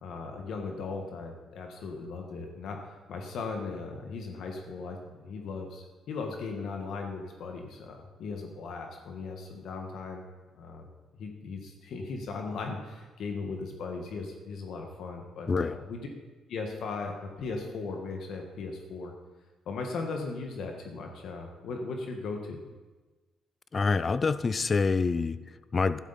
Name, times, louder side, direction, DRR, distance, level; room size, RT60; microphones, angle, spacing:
voice 1, 0.0-10.2 10.6-10.9 11.2-16.1 16.5-19.1 19.6-22.6, left 4 dB, 75° left, 3 dB, 1.5 m, -37 dB
voice 2, 15.5-15.8 23.7-26.0, left 4 dB, 35° left, 15 dB, 0.5 m, -27 dB
12.0 x 11.5 x 4.1 m, 1.2 s
cardioid pair, 90°, 0 cm